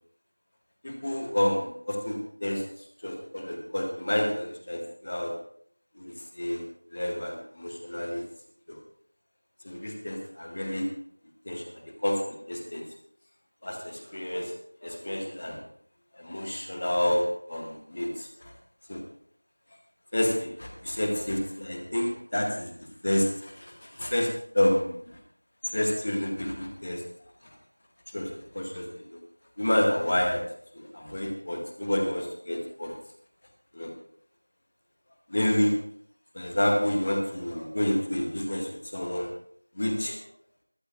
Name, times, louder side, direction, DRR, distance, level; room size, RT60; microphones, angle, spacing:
voice 1, 0.8-5.3 5.9-6.6 6.9-8.2 8.7-8.8 9.6-10.9 11.4-11.7 12.0-12.8 13.6-14.5 14.8-15.6 16.1-18.5 18.9-19.0 20.1-25.2 25.6-27.0 27.4-27.6 28.1-29.2 29.6-30.4 30.7-33.0 33.7-33.9 35.3-35.8 36.3-39.3 39.7-40.2, left 1 dB, 10° left, 3 dB, 0.9 m, -29 dB
22.5 x 13.0 x 2.4 m, 0.64 s
figure-of-eight pair, 180°, 0 cm